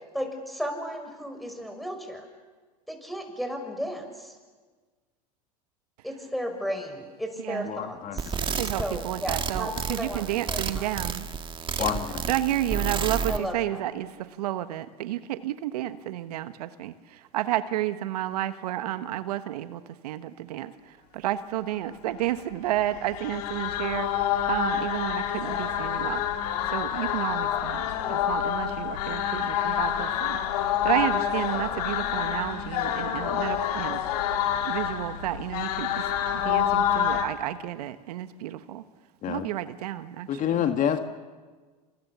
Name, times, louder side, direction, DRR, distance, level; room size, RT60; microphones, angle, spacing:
voice 1, 0.1-2.2 2.9-4.4 6.0-8.3 8.8-10.9 11.8-11.9 13.3-13.8, equal, ahead, 5 dB, 6.4 m, -34 dB
voice 2, 7.7-8.2 8.5-8.6 11.8-12.1 39.2-39.5 40.3-41.0, left 9 dB, 40° left, 7 dB, 1.9 m, -27 dB
sound 1, 8.2-13.4, right 6 dB, 25° right, 1.9 m, -31 dB
voice 3, 8.6-11.3 12.3-26.2 26.7-34.0 34.6-38.8 39.3-40.6, right 13 dB, 75° right, 11 dB, 1.3 m, -31 dB
sound 2, 22.9-37.3, left 9 dB, 70° left, 2.8 m, -27 dB
29.0 x 26.5 x 7.0 m, 1.4 s
hypercardioid pair, 90°, 20 cm